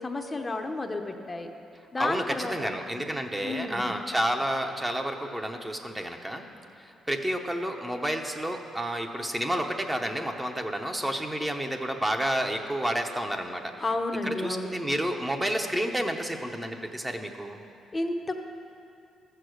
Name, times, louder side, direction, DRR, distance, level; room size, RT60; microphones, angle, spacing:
voice 1, 0.0-1.5 1.9-2.7 3.4-3.9 13.8-14.8 17.9-18.3, left 2 dB, 25° left, 4 dB, 0.7 m, -31 dB
voice 2, 2.0-6.5 6.8-13.7 14.2-17.6, right 1 dB, 10° right, 4 dB, 0.8 m, -30 dB
13.5 x 6.6 x 6.3 m, 2.6 s
cardioid pair, 90°, 0 cm